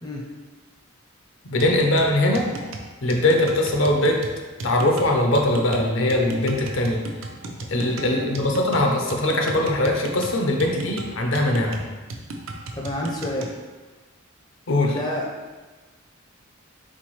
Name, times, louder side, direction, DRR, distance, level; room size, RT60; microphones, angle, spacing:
voice 1, 1.4-2.5 3.0-4.2 4.6-7.1 7.7-11.8 14.7-15.0, left 1 dB, 70° left, 2 dB, 0.6 m, -21 dB
sound 1, 1.6-13.6, right 2 dB, 75° right, 0.5 m, -36 dB
voice 2, 8.0-8.4 12.7-13.5 14.8-15.5, left 1 dB, 20° left, -1 dB, 0.5 m, -30 dB
4.3 x 3.7 x 3.1 m, 1.3 s
head